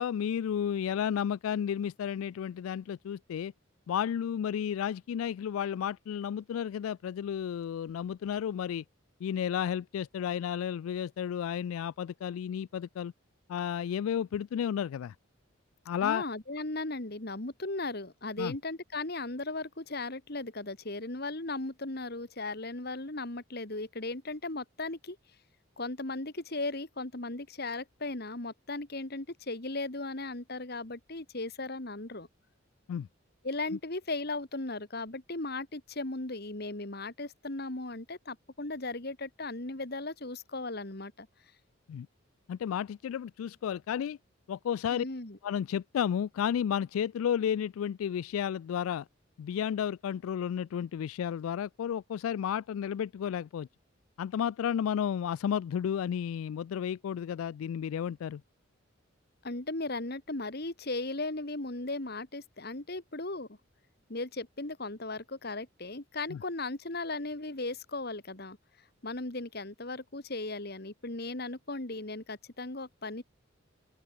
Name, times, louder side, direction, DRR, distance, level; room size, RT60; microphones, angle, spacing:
voice 1, 0.0-3.5 3.9-8.8 9.2-13.1 13.5-15.1 15.9-16.2 18.4-18.5 32.9-33.1 41.9-42.1 42.5-44.2 44.5-45.0 45.4-49.1 49.4-53.7 54.2-58.4 66.3-66.4, left 8 dB, 90° left, 0.3 m, -32 dB
voice 2, 16.0-25.2 25.8-32.3 33.4-41.3 44.9-45.4 59.4-63.6 64.1-68.6 69.0-73.2, left 2 dB, 50° left, 2.1 m, -37 dB
open air
head